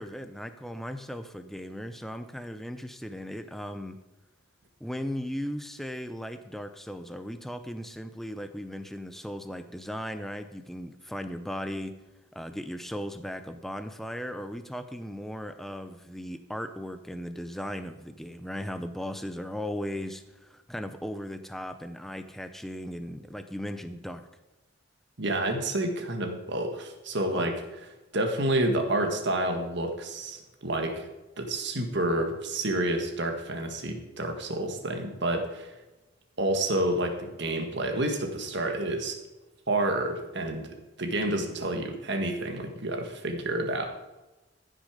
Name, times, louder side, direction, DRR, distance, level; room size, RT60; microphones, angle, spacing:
voice 1, 0.0-4.0 4.8-11.9 12.3-24.3 27.3-27.5, equal, ahead, 9 dB, 0.5 m, -37 dB
voice 2, 25.2-27.5 28.1-31.1 31.4-35.7 36.4-39.2 39.7-40.7 41.0-43.9, right 1 dB, 55° right, 4 dB, 1.7 m, -29 dB
15.0 x 6.5 x 5.1 m, 1.1 s
head